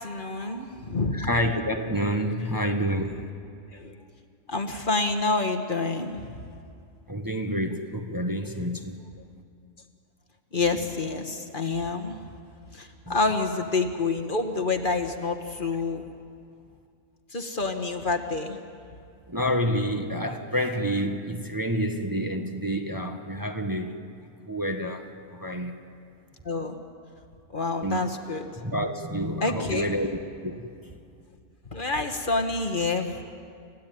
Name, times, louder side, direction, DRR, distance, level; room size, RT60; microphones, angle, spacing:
voice 1, 0.0-1.3 2.6-2.7 3.7-4.0 4.5-6.5 8.5-8.7 10.5-12.2 12.7-16.0 17.3-18.6 26.4-26.8 27.5-28.5 29.4-30.0 31.7-33.4, left 3 dB, 45° left, 5 dB, 1.5 m, -28 dB
voice 2, 1.1-3.3 7.1-9.0 13.1-13.2 19.3-24.0 24.5-25.7 27.8-28.0 28.6-30.7, equal, 15° right, 4 dB, 1.3 m, -28 dB
29.5 x 15.5 x 9.3 m, 2.3 s
omnidirectional pair, 1.3 m